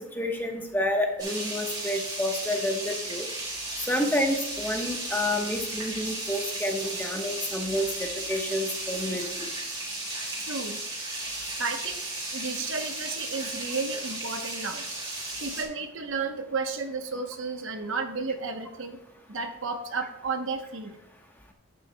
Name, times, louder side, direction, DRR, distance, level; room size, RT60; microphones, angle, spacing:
voice 1, 0.2-3.3 3.9-9.5, left 1 dB, 10° left, 2 dB, 1.1 m, -29 dB
sound 1, 1.2-15.6, right 2 dB, 20° right, 2.4 m, -35 dB
voice 2, 10.5-10.8 11.6-12.0 12.3-14.9 15.4-19.0 19.3-21.0, right 4 dB, 65° right, 6 dB, 0.9 m, -32 dB
11.0 x 8.9 x 2.2 m, 0.86 s
head